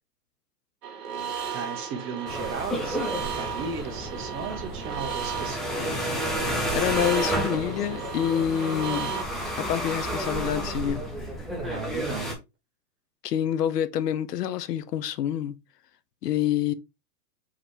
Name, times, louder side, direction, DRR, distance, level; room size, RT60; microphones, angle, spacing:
sound 1, 0.8-9.2, right 7 dB, 70° right, 1.6 m, -35 dB
voice 1, 1.5-5.8 11.6-12.4, right 5 dB, 25° right, 1.0 m, -36 dB
sound 2, 2.3-12.3, equal, ahead, 0.5 m, -31 dB
voice 2, 6.7-9.2 9.6-11.0 13.2-15.5 16.2-16.7, left 10 dB, 75° left, 0.8 m, -27 dB
4.8 x 3.1 x 3.5 m
hypercardioid pair, 135°, 48 cm